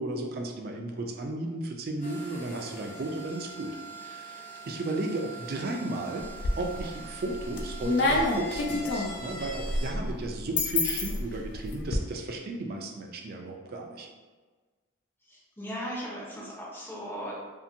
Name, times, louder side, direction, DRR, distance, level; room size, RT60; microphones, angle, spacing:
voice 1, 0.0-4.4 4.7-6.3 6.6-14.1, right 2 dB, 45° right, 2 dB, 0.3 m, -34 dB
sound 1, 2.0-9.9, equal, 45° left, 0.8 m, -43 dB
sound 2, 6.2-6.9 7.3-12.0, left 2 dB, 60° left, 0.3 m, -28 dB
voice 2, 15.3-17.3, equal, 10° left, -5 dB, 0.5 m, -37 dB
2.7 x 2.5 x 2.5 m, 1.4 s
head